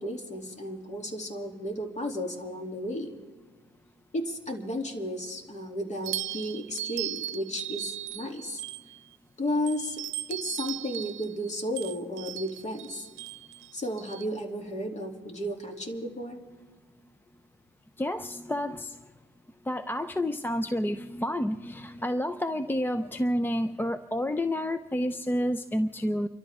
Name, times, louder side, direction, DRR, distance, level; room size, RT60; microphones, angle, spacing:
voice 1, 0.0-3.1 4.1-8.6 9.4-10.0 10.3-13.1 13.7-16.4, equal, 35° left, 2 dB, 2.9 m, -33 dB
sound 1, 6.0-9.2 9.7-14.3, right 13 dB, 85° right, 0.7 m, -37 dB
voice 2, 18.0-19.0 19.7-26.3, left 1 dB, 10° left, 10 dB, 0.6 m, -29 dB
30.0 x 13.0 x 3.6 m, 1.4 s
cardioid pair, 90°, 20 cm